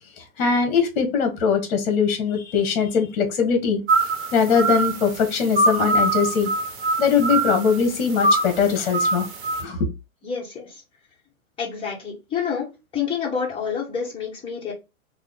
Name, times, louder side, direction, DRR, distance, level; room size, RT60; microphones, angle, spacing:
voice 1, 0.2-3.8 4.3-6.5 7.0-9.3 9.6-9.9, left 6 dB, 45° left, 1.2 m, -21 dB
sound 1, 3.9-9.6, right 2 dB, 40° right, 1.0 m, -24 dB
voice 2, 10.2-10.8 11.6-12.7 12.9-14.7, left 6 dB, 10° left, 1.2 m, -28 dB
3.0 x 2.2 x 3.8 m
hypercardioid pair, 125°, 42 cm